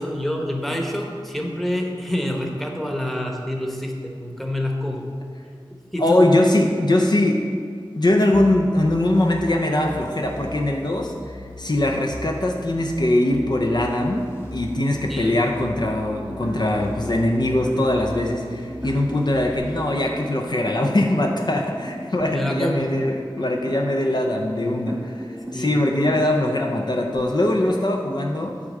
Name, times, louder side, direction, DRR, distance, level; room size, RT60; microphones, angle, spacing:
voice 1, 0.0-5.1 5.7-6.3 15.1-15.3 22.3-22.9 25.5-25.9, left 1 dB, ahead, 1 dB, 1.1 m, -27 dB
voice 2, 6.0-7.4 7.9-14.2 14.5-28.6, left 1 dB, 50° left, 1 dB, 0.6 m, -21 dB
sound 1, 8.3-19.6, left 1 dB, 25° left, 1.3 m, -39 dB
sound 2, 13.4-27.2, equal, 20° right, 0.7 m, -36 dB
8.1 x 3.6 x 6.5 m, 2.2 s
wide cardioid pair, 45°, 9 cm